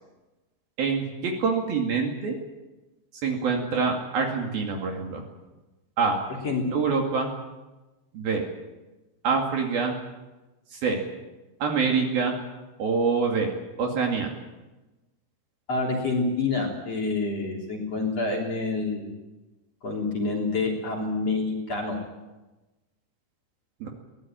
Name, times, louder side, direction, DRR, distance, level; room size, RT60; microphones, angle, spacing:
voice 1, 0.8-2.4 3.2-5.2 6.0-6.2 6.7-7.3 8.1-8.4 9.2-9.9 10.7-11.0 11.6-12.4 12.8-13.5 13.8-14.3 23.8-23.9, right 5 dB, 55° right, 2 dB, 3.8 m, -25 dB
voice 2, 6.3-6.7 15.7-19.2 19.8-22.0, left 3 dB, 35° left, -1 dB, 3.8 m, -27 dB
23.0 x 17.5 x 9.0 m, 1.1 s
omnidirectional pair, 5.6 m